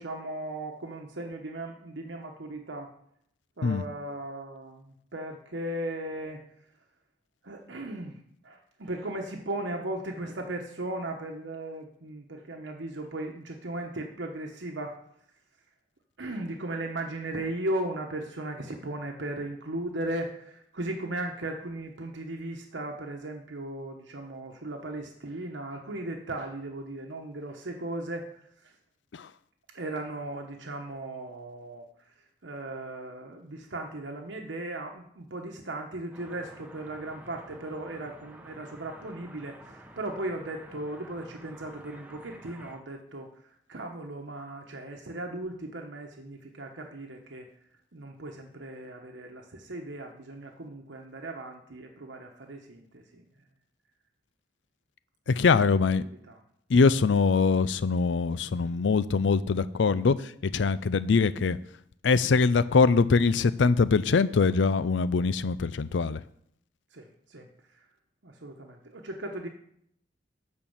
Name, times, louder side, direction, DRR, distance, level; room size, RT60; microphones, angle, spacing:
voice 1, 0.0-2.9 3.6-6.4 7.4-14.9 16.2-28.3 28.6-28.7 29.7-31.9 32.4-47.5 47.9-53.2 55.3-55.9 56.3-56.4 58.6-58.7 66.9-67.5 68.2-69.5, right 1 dB, 85° right, 1.1 m, -37 dB
sound 1, 36.1-42.8, right 1 dB, 10° right, 0.9 m, -50 dB
voice 2, 55.3-56.0 56.7-61.6 62.0-66.2, left 4 dB, 85° left, 0.5 m, -23 dB
10.5 x 4.4 x 7.2 m
head